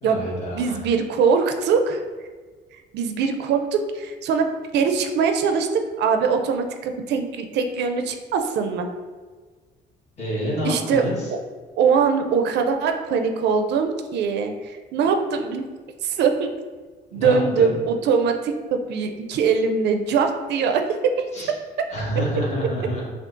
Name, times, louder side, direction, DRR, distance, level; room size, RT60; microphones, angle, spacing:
voice 1, 0.0-0.8 10.2-11.3 17.1-17.7 21.3-21.5 21.9-23.0, equal, 35° left, -5 dB, 1.3 m, -27 dB
voice 2, 0.5-2.0 2.7-8.9 10.6-11.1 11.8-15.6 16.0-16.5 17.1-21.3, right 5 dB, 65° right, 5 dB, 0.4 m, -22 dB
6.0 x 2.4 x 2.5 m, 1.4 s
cardioid pair, 145°, 19 cm